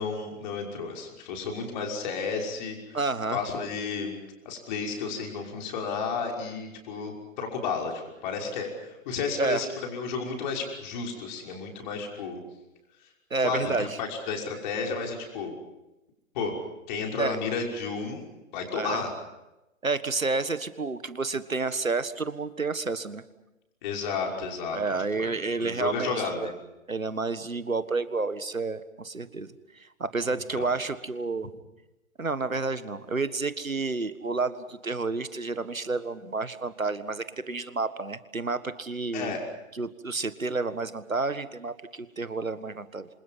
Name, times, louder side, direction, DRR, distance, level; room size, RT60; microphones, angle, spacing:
voice 1, 0.0-3.0 3.3-4.1 4.4-12.4 13.4-15.5 16.3-16.5 16.9-18.3 18.5-19.1 23.8-24.8 25.1-26.5 30.6-30.7 39.1-39.4, left 5 dB, 35° left, 1 dB, 5.9 m, -32 dB
voice 2, 2.9-3.4 9.4-9.6 13.3-14.0 17.2-17.4 18.7-19.0 19.8-23.2 24.7-26.5 26.9-31.5 32.2-39.3 39.7-43.1, right 3 dB, 80° right, 13 dB, 1.7 m, -30 dB
28.5 x 26.5 x 5.8 m, 0.97 s
figure-of-eight pair, 125°, 40 cm